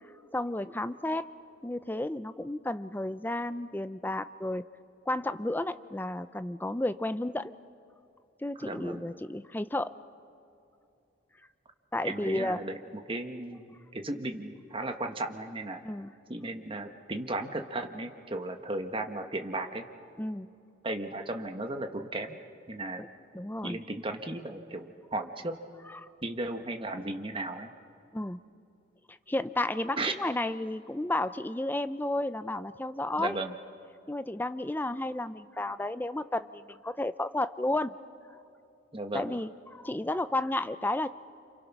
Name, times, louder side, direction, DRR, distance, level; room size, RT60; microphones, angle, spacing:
voice 1, 0.3-1.3 1.6-4.6 5.1-7.5 8.4-9.9 11.9-12.6 15.8-16.1 20.2-20.5 23.0-23.1 23.3-23.8 25.9-26.1 28.1-28.4 29.1-33.4 34.1-38.0 39.1-41.1, left 1 dB, 10° left, 12 dB, 0.5 m, -32 dB
voice 2, 8.6-9.1 12.0-12.8 13.1-15.8 16.3-19.8 20.8-22.4 22.7-23.0 23.6-25.5 26.2-27.7 30.0-30.1 33.2-33.5 38.9-39.3, right 2 dB, 25° right, 5 dB, 1.3 m, -35 dB
29.5 x 27.0 x 6.0 m, 2.6 s
head